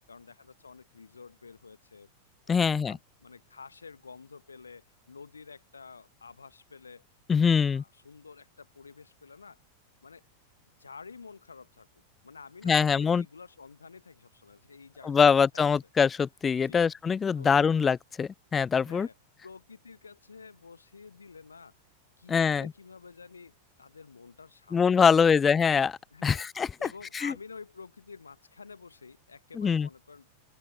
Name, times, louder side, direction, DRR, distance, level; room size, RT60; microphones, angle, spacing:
voice 1, 0.1-2.1 2.6-9.6 10.0-10.2 10.8-11.9 12.2-15.7 16.6-16.9 17.4-17.5 18.8-19.1 19.4-21.7 22.2-25.4 26.1-26.5 26.8-30.3, left 5 dB, 75° left, 1.2 m, -50 dB
voice 2, 2.5-3.0 7.3-7.8 12.6-13.2 15.0-19.1 22.3-22.7 24.7-26.9 27.1-27.3 29.6-29.9, left 6 dB, 20° left, 0.3 m, -24 dB
open air
figure-of-eight pair, 90°, 0 cm